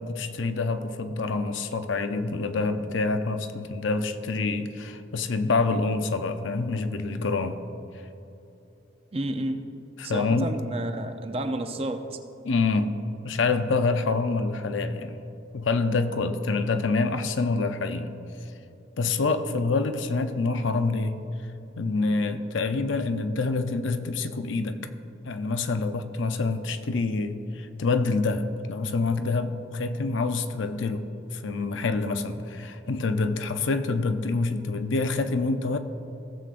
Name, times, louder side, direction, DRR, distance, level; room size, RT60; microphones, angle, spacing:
voice 1, 0.0-7.6 10.0-10.5 12.4-12.9 13.2-15.2 15.5-18.1 19.0-21.2 21.8-24.8 25.2-31.0 31.3-35.8, left 3 dB, 75° left, 8 dB, 0.6 m, -26 dB
voice 2, 9.1-9.6 10.0-12.2, right 1 dB, 30° right, 7 dB, 0.5 m, -31 dB
16.0 x 7.6 x 2.5 m, 3.0 s
head